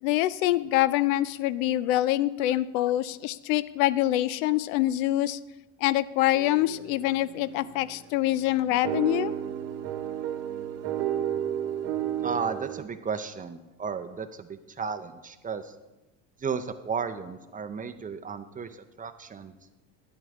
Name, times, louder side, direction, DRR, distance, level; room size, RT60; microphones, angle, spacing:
voice 1, 0.0-5.4 5.8-9.3, left 15 dB, 80° left, 17 dB, 0.5 m, -25 dB
sound 1, 6.3-12.8, right 10 dB, 70° right, 0.9 m, -33 dB
voice 2, 12.2-15.7 16.4-19.5, right 5 dB, 20° right, 9 dB, 0.6 m, -34 dB
9.8 x 9.1 x 3.6 m, 1.1 s
supercardioid pair, 100°, 40 cm